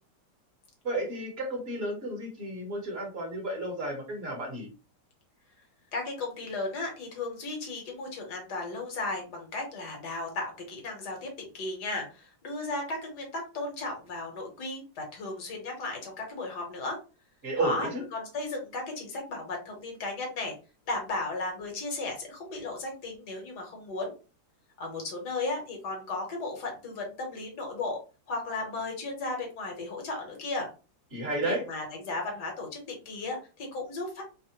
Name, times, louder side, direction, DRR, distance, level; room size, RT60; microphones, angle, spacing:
voice 1, 0.8-4.7 17.4-18.0 31.1-31.6, right 1 dB, 40° right, 0 dB, 1.1 m, -32 dB
voice 2, 5.9-17.0 17.6-20.5 20.8-24.1 24.8-28.0 28.3-30.7 31.4-34.2, left 2 dB, 65° left, 1 dB, 1.5 m, -35 dB
3.3 x 2.1 x 2.8 m, 0.33 s
omnidirectional pair, 2.0 m